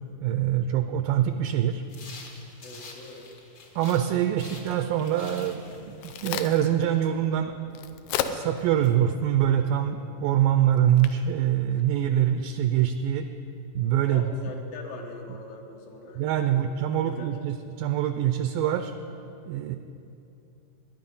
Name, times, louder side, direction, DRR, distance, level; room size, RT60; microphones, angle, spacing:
voice 1, 0.2-1.8 3.8-7.5 8.3-13.3 13.7-14.3 16.2-18.9 19.5-19.8, right 11 dB, 80° right, 8 dB, 2.0 m, -24 dB
sound 1, 1.9-4.1 4.4-7.0, left 3 dB, 50° left, 1.5 m, -47 dB
voice 2, 2.6-3.3 11.9-12.0 14.1-16.7 17.0-17.4, left 3 dB, 70° left, 1 dB, 3.0 m, -42 dB
Crack, 5.6-12.5, left 9 dB, 85° left, 2.7 m, -38 dB
21.5 x 9.5 x 5.5 m, 2.8 s
omnidirectional pair, 4.4 m